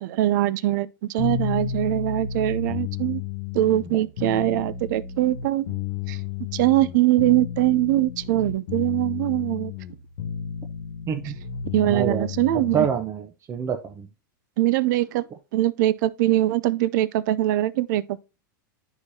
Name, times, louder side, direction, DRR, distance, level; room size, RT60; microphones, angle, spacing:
voice 1, 0.0-3.2 3.5-5.7 6.1-6.2 6.5-9.7 11.7-12.9 14.6-15.2 15.5-18.2, right 15 dB, 60° right, 0.5 m, -22 dB
sound 1, 1.2-13.1, left 7 dB, 70° left, 1.2 m, -32 dB
voice 2, 11.9-12.3 12.7-14.1, right 8 dB, 25° right, 0.8 m, -27 dB
9.5 x 4.9 x 2.7 m
hypercardioid pair, 110°, 11 cm